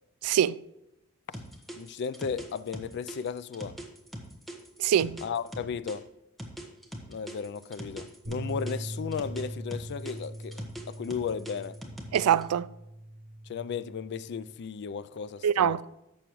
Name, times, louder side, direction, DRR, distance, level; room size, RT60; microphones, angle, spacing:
voice 1, 0.2-0.6 4.8-5.2 12.1-12.7 15.4-15.9, right 9 dB, 75° right, 0.3 m, -24 dB
sound 1, 1.3-6.0 6.4-9.4 9.7-12.4, equal, ahead, 1.2 m, -41 dB
voice 2, 1.7-3.8 5.2-6.1 7.1-11.8 13.5-15.8, left 6 dB, 50° left, 0.3 m, -35 dB
sound 2, 8.2-14.5, right 1 dB, 50° right, 3.8 m, -41 dB
11.5 x 7.4 x 3.1 m
head